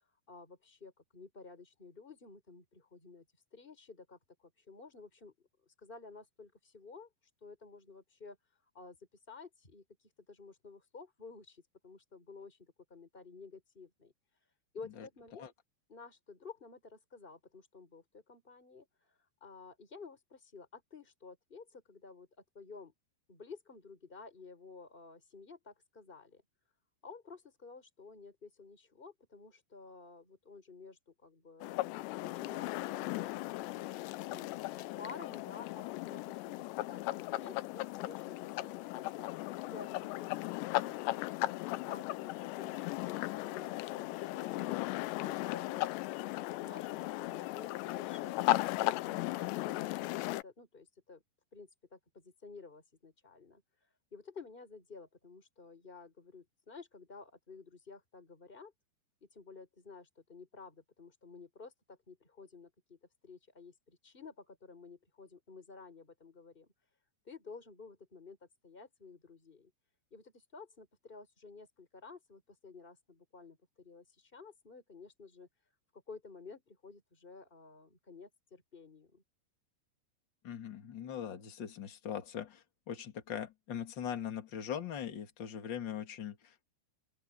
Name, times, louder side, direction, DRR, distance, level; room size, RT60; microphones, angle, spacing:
voice 1, 0.3-3.3 3.5-5.3 5.6-7.1 7.4-8.4 8.7-9.0 9.3-9.8 10.3-14.1 14.7-15.5 15.9-22.3 22.5-22.9 23.3-26.4 27.0-31.8 32.2-36.4 36.8-39.3 39.6-44.8 45.2-45.9 46.2-48.4 48.8-51.2 51.5-53.6 54.1-58.7 59.2-66.7 67.3-69.7 70.1-75.5 76.1-79.2, left 4 dB, 10° left, 5.2 m, -53 dB
sound 1, 31.6-50.4, left 18 dB, 85° left, 2.9 m, -36 dB
voice 2, 80.4-86.6, left 9 dB, 35° left, 2.2 m, -41 dB
omnidirectional pair, 5.0 m